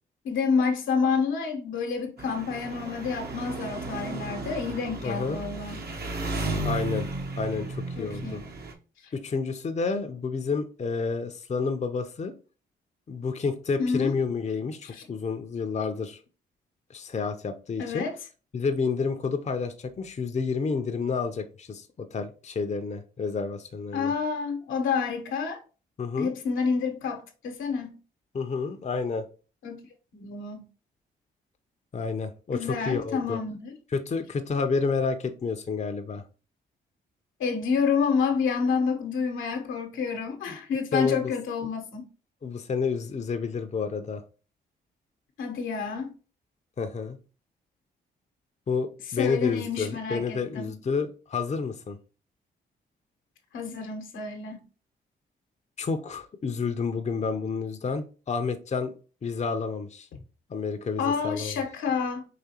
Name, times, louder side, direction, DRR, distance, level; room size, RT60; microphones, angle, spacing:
voice 1, 0.2-5.9 8.0-8.4 13.8-14.1 14.8-15.1 17.8-18.1 23.9-25.6 26.2-28.0 29.6-29.8 30.1-30.6 32.5-33.7 37.4-42.1 45.4-46.1 49.2-50.7 53.5-54.6 61.0-62.3, left 5 dB, 80° left, 1.0 m, -28 dB
Engine, 2.2-8.7, right 2 dB, 55° right, 1.0 m, -34 dB
voice 2, 5.0-5.4 6.6-7.1 7.4-8.4 9.1-12.3 13.1-16.2 16.9-18.1 18.5-24.1 26.0-26.3 28.3-29.2 31.9-33.4 33.9-36.2 40.5-40.6 40.9-41.3 42.4-44.2 46.8-47.2 48.7-52.0 55.8-58.9 59.2-60.1 60.5-61.6, left 5 dB, 35° left, 0.6 m, -30 dB
4.9 x 3.1 x 2.9 m
supercardioid pair, 50°, 20 cm